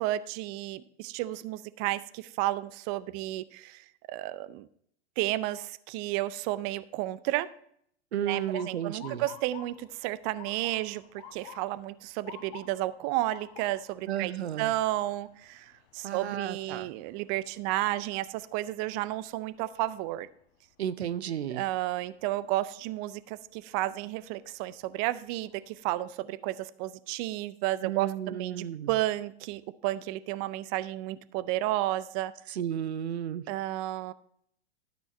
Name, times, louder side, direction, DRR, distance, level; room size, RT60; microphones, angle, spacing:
voice 1, 0.0-4.7 5.2-7.5 8.2-11.0 11.3-20.3 21.5-32.3 33.5-34.1, right 16 dB, 35° right, 16 dB, 0.5 m, -32 dB
voice 2, 8.1-9.3 14.1-14.7 16.0-16.9 20.8-21.6 27.8-28.9 32.5-33.4, right 10 dB, 80° right, 14 dB, 0.7 m, -33 dB
Motor vehicle (road) / Siren, 8.3-20.2 20.7-21.1 21.9-22.2 24.1-24.3 24.8-24.9 25.3-26.0, left 7 dB, 45° left, 1.4 m, -52 dB
12.5 x 6.2 x 4.3 m, 0.66 s
hypercardioid pair, 110°, 32 cm